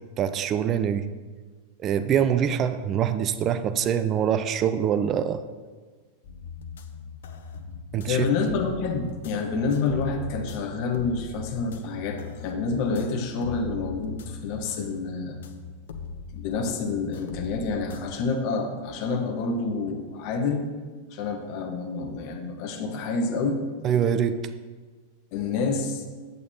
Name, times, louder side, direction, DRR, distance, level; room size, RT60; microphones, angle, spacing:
voice 1, 0.2-1.1 1.8-5.4 7.9-8.2 23.8-24.4, right 8 dB, 30° right, 11 dB, 0.4 m, -24 dB
sound 1, 6.2-18.1, left 5 dB, 60° left, 0.6 m, -40 dB
voice 2, 8.1-15.4 16.3-20.6 21.1-23.7 25.3-26.1, left 4 dB, 45° left, 4 dB, 1.0 m, -28 dB
9.2 x 8.2 x 2.8 m, 1.4 s
figure-of-eight pair, 90°, 0 cm